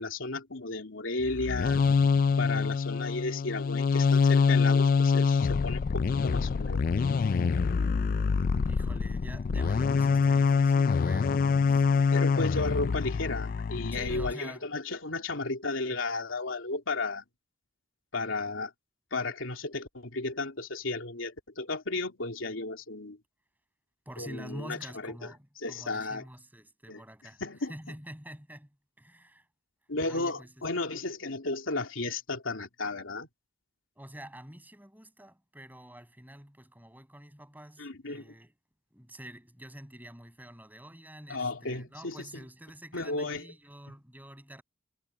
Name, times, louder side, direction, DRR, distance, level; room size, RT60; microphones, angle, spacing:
voice 1, 0.0-1.8 2.4-6.8 11.7-11.8 12.1-17.2 18.1-18.7 19.1-23.2 24.2-25.1 25.6-26.2 26.9-27.0 27.4-27.7 29.9-33.3 37.8-38.3 41.3-42.2 42.9-43.5, left 3 dB, 85° left, 3.0 m, -34 dB
sound 1, 1.2-14.3, left 5 dB, 45° left, 0.3 m, -25 dB
voice 2, 8.6-12.3 13.9-14.7 18.3-18.4 24.0-27.4 27.7-28.7 29.0-29.4 30.1-30.5 33.9-38.5 38.9-44.6, equal, 10° right, 6.8 m, -47 dB
head